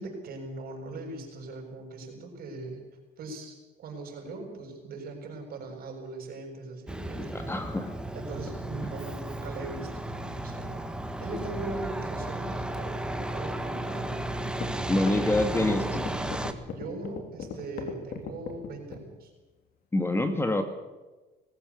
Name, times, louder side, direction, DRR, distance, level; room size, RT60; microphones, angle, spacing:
voice 1, 0.0-2.8 3.2-7.3 8.1-10.8 11.2-14.3 16.7-19.3, right 2 dB, 60° right, 2 dB, 7.2 m, -40 dB
Truck, 6.9-16.5, right 1 dB, 5° right, 1.7 m, -34 dB
voice 2, 7.3-8.0 14.9-16.1 19.9-20.6, left 1 dB, 15° left, 7 dB, 2.0 m, -26 dB
sound 1, 14.5-19.1, left 7 dB, 65° left, 3.4 m, -37 dB
20.0 x 16.0 x 8.5 m, 1.2 s
cardioid pair, 110°, 17 cm